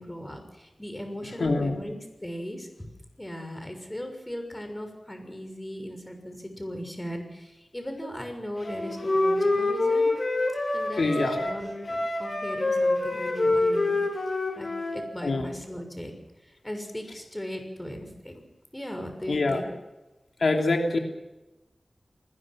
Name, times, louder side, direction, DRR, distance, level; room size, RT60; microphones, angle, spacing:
voice 1, 0.0-2.7 3.2-10.1 10.7-16.1 16.4-18.4 18.7-19.7, equal, 15° left, 5 dB, 6.4 m, -38 dB
voice 2, 1.4-1.8 11.0-11.4 15.2-15.5 19.3-19.6 20.4-21.0, left 3 dB, 80° left, 3 dB, 3.0 m, -24 dB
Wind instrument woodwind instrument, 8.6-15.0, left 2 dB, 45° left, 7.6 m, -26 dB
28.5 x 21.0 x 6.2 m, 1.0 s
wide cardioid pair, 80°, 0 cm